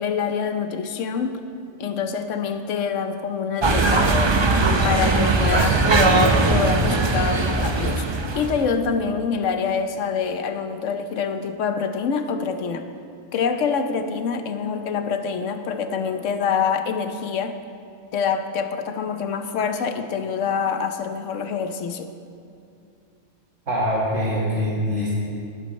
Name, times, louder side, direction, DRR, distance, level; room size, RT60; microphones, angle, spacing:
voice 1, 0.0-1.4 1.8-4.1 4.8-8.1 8.3-12.8 13.3-17.6 18.1-22.1, left 6 dB, 85° left, 8 dB, 1.1 m, -26 dB
sound 1, 3.6-8.7, right 3 dB, 35° right, 0.4 m, -19 dB
voice 2, 23.7-25.1, equal, 65° right, -6 dB, 2.0 m, -23 dB
19.0 x 8.4 x 3.1 m, 2.5 s
omnidirectional pair, 1.3 m